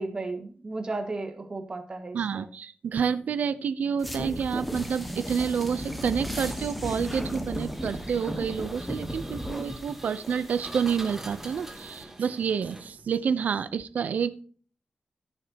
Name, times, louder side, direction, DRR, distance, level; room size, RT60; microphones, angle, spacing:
voice 1, 0.0-2.5, right 2 dB, 30° right, 5 dB, 1.8 m, -34 dB
voice 2, 2.1-14.4, right 7 dB, 75° right, 13 dB, 0.7 m, -29 dB
sound 1, 4.0-12.0, equal, ahead, 1.6 m, -36 dB
Engine, 7.5-13.2, right 1 dB, 15° right, 2.1 m, -45 dB
15.5 x 6.6 x 2.9 m, 0.44 s
wide cardioid pair, 145°, 3 cm